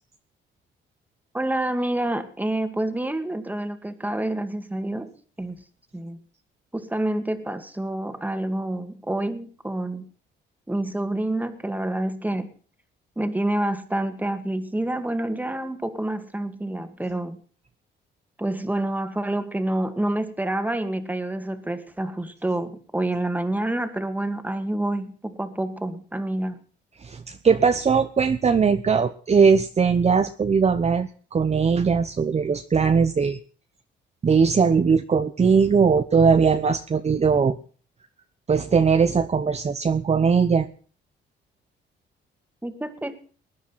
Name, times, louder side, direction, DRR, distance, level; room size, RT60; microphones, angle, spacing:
voice 1, 1.3-5.1 5.4-5.6 5.9-6.2 6.7-10.1 10.7-12.5 13.2-17.4 18.4-26.6 42.6-43.2, right 1 dB, 10° right, 10 dB, 2.1 m, -28 dB
voice 2, 27.0-33.4 34.2-37.6 38.5-40.7, right 5 dB, 35° right, 9 dB, 1.0 m, -20 dB
20.0 x 10.0 x 5.8 m, 0.42 s
cardioid pair, 90°, 20 cm